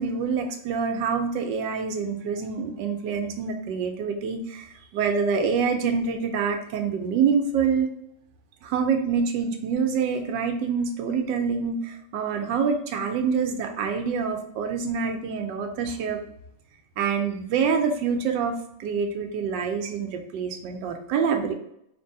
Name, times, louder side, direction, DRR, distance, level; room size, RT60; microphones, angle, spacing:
voice 1, 0.0-7.9 8.6-16.2 17.0-18.5 18.8-21.5, right 6 dB, 85° right, 5 dB, 1.3 m, -26 dB
3.2 x 2.6 x 3.6 m, 0.74 s
omnidirectional pair, 1.9 m